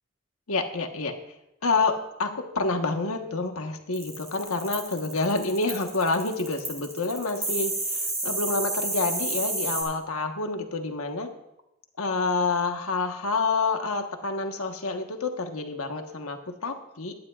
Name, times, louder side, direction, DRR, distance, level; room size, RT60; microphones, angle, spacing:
voice 1, 0.5-1.1 1.6-1.9 2.2-11.3 12.0-17.1, left 3 dB, 90° left, 4 dB, 1.3 m, -28 dB
sound 1, 3.9-9.8, right 2 dB, 15° right, 4.0 m, -30 dB
21.5 x 10.5 x 2.5 m, 0.87 s
head